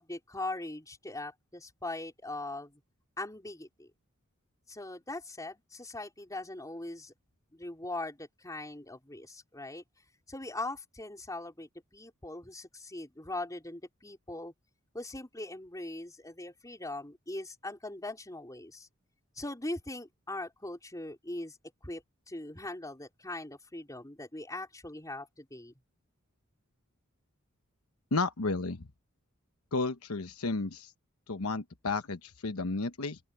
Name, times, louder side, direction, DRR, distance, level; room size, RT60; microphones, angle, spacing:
voice 1, 0.0-2.8 3.2-3.9 4.7-7.1 7.5-9.8 10.3-14.5 14.9-18.9 19.4-21.6 21.8-25.7, left 2 dB, 15° left, 4.5 m, -41 dB
voice 2, 28.1-28.9 29.7-30.9 31.3-33.2, left 3 dB, 80° left, 1.1 m, -32 dB
open air
head